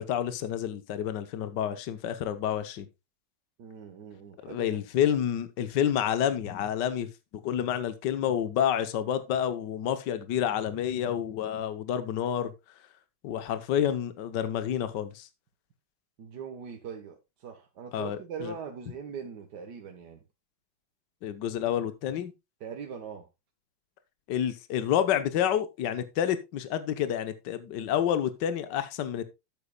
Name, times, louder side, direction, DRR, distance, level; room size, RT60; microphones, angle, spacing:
voice 1, 0.0-2.9 4.4-12.5 13.2-15.3 17.9-18.5 21.2-22.3 24.3-29.2, left 9 dB, 65° left, 1.6 m, -29 dB
voice 2, 3.6-4.8 16.2-20.2 22.6-23.3, right 6 dB, 60° right, 1.7 m, -41 dB
12.5 x 8.4 x 2.3 m
omnidirectional pair, 2.2 m